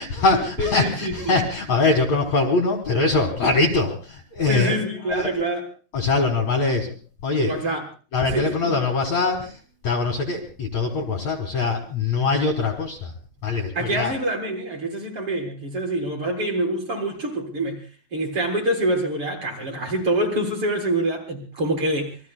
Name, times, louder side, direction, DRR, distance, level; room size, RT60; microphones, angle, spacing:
voice 1, 0.0-4.8 5.0-5.4 5.9-6.9 7.2-7.5 8.1-13.1 13.4-14.1, left 3 dB, 50° left, 1 dB, 2.4 m, -23 dB
voice 2, 0.6-1.4 4.5-5.6 7.4-7.8 8.3-8.7 13.7-17.8 18.1-22.2, right 1 dB, 30° right, 0 dB, 4.2 m, -26 dB
27.5 x 22.5 x 2.2 m, 0.38 s
omnidirectional pair, 5.0 m